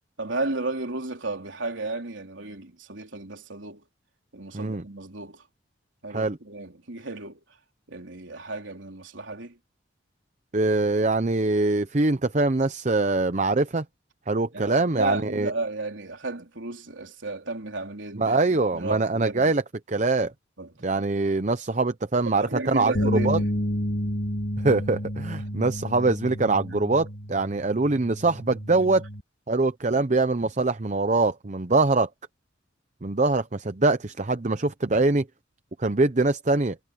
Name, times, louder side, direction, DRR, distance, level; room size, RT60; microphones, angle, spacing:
voice 1, 0.2-3.8 4.3-5.4 6.0-7.4 7.9-9.6 14.5-19.5 20.6-20.7 22.3-23.5 29.9-30.0, right 2 dB, 80° right, 3.6 m, -33 dB
voice 2, 10.5-13.8 14.3-15.5 18.2-19.6 19.9-20.3 20.8-23.4 24.6-29.0 29.5-32.1 33.0-35.3 35.8-36.8, right 3 dB, 40° right, 0.8 m, -23 dB
sound 1, 23.0-29.2, equal, 60° left, 3.2 m, -30 dB
head